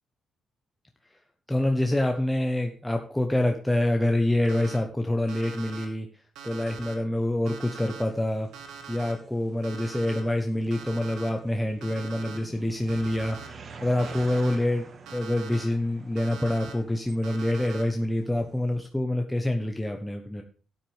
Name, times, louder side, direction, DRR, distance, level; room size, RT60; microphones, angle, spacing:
voice 1, 1.5-8.5 8.9-14.8 15.1-20.4, left 1 dB, 5° left, 4 dB, 1.1 m, -26 dB
Alarm, 4.4-4.8 5.3-5.8 6.3-6.9 7.5-8.0 8.5-9.1 9.6-10.2 10.7-11.3 11.8-12.4 12.9-13.5 14.0-14.6 15.1-15.6 16.2-16.7 17.2-17.8, right 6 dB, 85° right, 2.5 m, -43 dB
sound 1, 7.9-18.9, right 4 dB, 45° right, 1.5 m, -48 dB
12.0 x 9.3 x 3.5 m, 0.41 s
cardioid pair, 90°, 0 cm